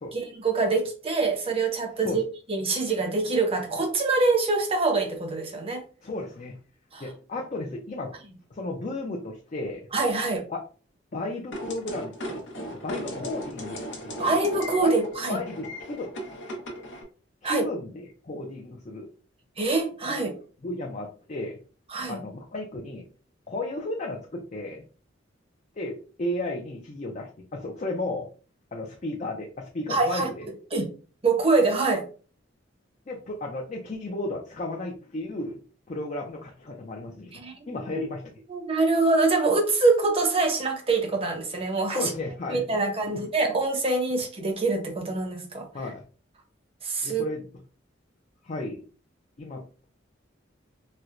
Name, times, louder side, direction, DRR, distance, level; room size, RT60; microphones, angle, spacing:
voice 1, 0.1-2.2 2.5-5.8 6.9-7.0 9.9-10.4 14.2-15.4 17.4-17.6 19.6-20.3 21.9-22.2 29.9-30.3 30.7-30.9 31.2-32.1 37.3-38.1 38.5-42.1 42.5-45.7 46.8-47.2, right 3 dB, 30° right, 0.7 m, -25 dB
voice 2, 6.0-6.6 7.0-8.1 8.5-9.9 10.5-10.6 11.1-12.4 12.7-14.3 14.8-15.0 15.3-16.1 17.4-19.1 20.1-20.2 20.6-21.6 22.1-23.0 23.5-24.8 25.8-28.3 28.7-30.4 33.1-35.6 35.9-37.4 37.7-38.3 41.9-43.2 45.7-46.0 47.0-47.5 48.4-48.8 49.4-49.6, left 2 dB, 40° left, 0.5 m, -34 dB
sound 1, 11.5-17.0, equal, 65° left, 0.8 m, -37 dB
4.3 x 2.1 x 2.4 m
head